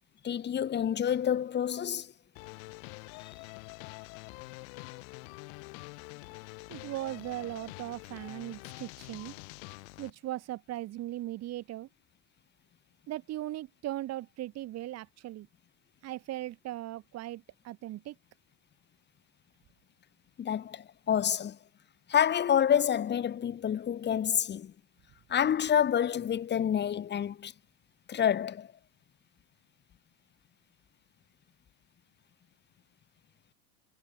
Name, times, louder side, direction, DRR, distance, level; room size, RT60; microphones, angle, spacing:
voice 1, 0.2-2.1 20.4-21.6 22.1-24.7 25.3-27.5 28.1-28.7, left 9 dB, 20° left, 4.5 m, -28 dB
sound 1, 2.4-10.1, left 32 dB, 55° left, 3.8 m, -46 dB
voice 2, 6.7-9.4 10.0-11.9 13.1-15.5 16.0-18.2, right 15 dB, 35° right, 4.2 m, -38 dB
supercardioid pair, 145°, 46 cm